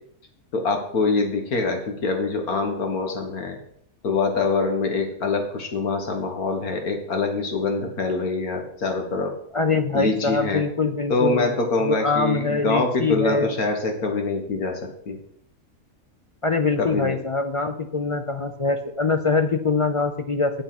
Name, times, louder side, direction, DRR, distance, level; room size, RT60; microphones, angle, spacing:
voice 1, 0.5-3.6 4.0-9.3 9.9-10.6 11.1-15.2 16.8-17.2, left 3 dB, 85° left, 4 dB, 2.1 m, -24 dB
voice 2, 9.5-13.6 16.4-20.5, left 4 dB, 50° left, 7 dB, 0.4 m, -24 dB
8.4 x 8.0 x 5.9 m, 0.69 s
omnidirectional pair, 1.5 m